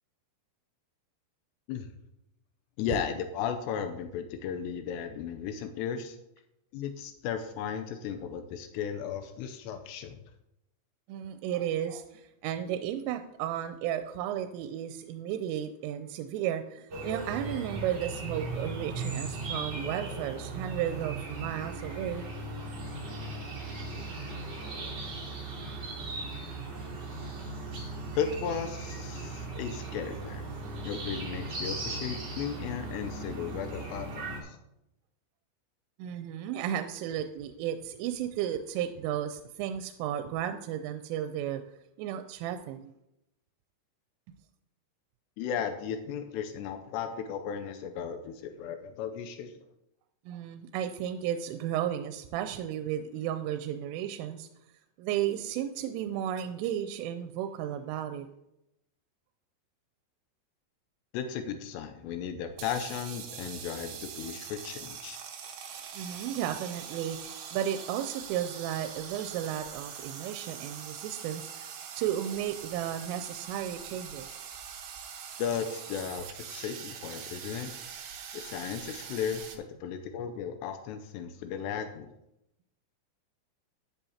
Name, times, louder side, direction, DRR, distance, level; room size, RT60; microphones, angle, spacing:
voice 1, 2.8-6.2 6.7-10.2 28.1-30.5 30.8-34.6 45.4-49.6 61.1-65.2 75.4-77.7 78.3-82.1, left 7 dB, 90° left, 7 dB, 2.5 m, -35 dB
voice 2, 11.1-22.3 36.0-41.6 42.0-42.9 50.3-54.5 55.0-58.3 65.9-74.4, right 10 dB, 90° right, 8 dB, 3.1 m, -34 dB
sound 1, 16.9-34.4, right 3 dB, 35° right, 4.0 m, -38 dB
sound 2, 62.5-79.6, right 7 dB, 70° right, 3.0 m, -43 dB
14.0 x 10.0 x 2.8 m, 0.86 s
omnidirectional pair, 5.6 m